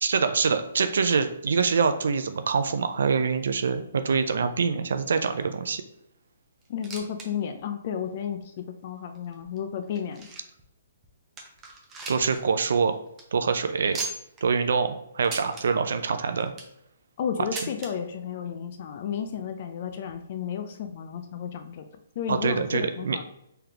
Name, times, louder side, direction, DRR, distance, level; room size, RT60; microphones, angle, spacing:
voice 1, 0.0-5.8 12.1-13.0 13.3-14.0 14.4-14.9 15.1-16.5 22.3-23.2, right 5 dB, 75° right, 9 dB, 0.4 m, -25 dB
sound 1, 6.6-7.3 7.6-7.7 8.3-8.4 9.1-10.6 11.0-11.1 11.4-12.4 12.7-12.8 13.1-13.2 13.9-14.4 15.2-15.6 16.3-16.8 17.5-17.9 18.9-19.0 19.2-19.3 20.1-20.2, right 3 dB, 15° right, 0.7 m, -37 dB
voice 2, 6.7-10.3 17.2-21.9 22.2-23.2, left 8 dB, 45° left, 6 dB, 0.4 m, -32 dB
3.9 x 3.3 x 2.8 m, 0.80 s
hypercardioid pair, 155°, 0 cm